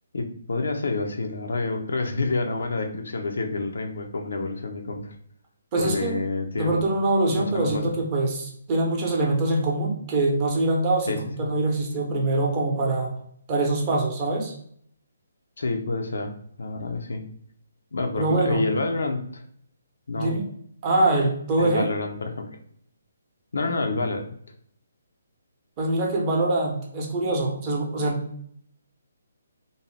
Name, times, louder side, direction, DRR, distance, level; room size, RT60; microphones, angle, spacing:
voice 1, 0.1-5.2 5.8-6.9 7.3-7.8 11.1-11.2 15.6-16.3 16.6-17.2 17.9-19.4 20.1-20.3 21.6-22.6 23.5-24.4, left 3 dB, 75° left, 4 dB, 0.5 m, -28 dB
voice 2, 5.7-6.2 6.5-13.1 13.5-14.5 18.1-18.7 20.1-20.4 20.8-21.9 25.8-28.4, right 2 dB, 30° right, -2 dB, 0.7 m, -24 dB
2.6 x 2.0 x 3.1 m, 0.66 s
hypercardioid pair, 150°, 0 cm